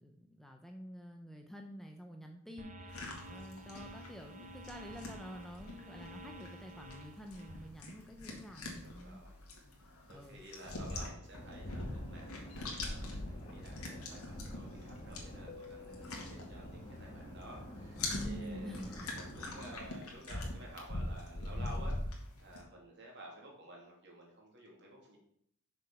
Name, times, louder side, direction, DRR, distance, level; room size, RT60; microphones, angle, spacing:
voice 1, 0.0-9.2 10.1-10.4 18.1-19.1, equal, ahead, 3 dB, 0.7 m, -48 dB
sound 1, 2.6-7.7, equal, 35° right, 0.8 m, -51 dB
sound 2, 2.9-17.1 17.4-22.6, left 2 dB, 90° left, 2.2 m, -43 dB
voice 2, 8.8-9.4 10.1-18.8 19.1-25.2, right 1 dB, 55° right, -1 dB, 2.8 m, -53 dB
sound 3, 11.3-19.8, left 1 dB, 25° left, 2.0 m, -48 dB
6.4 x 6.3 x 6.2 m, 0.70 s
head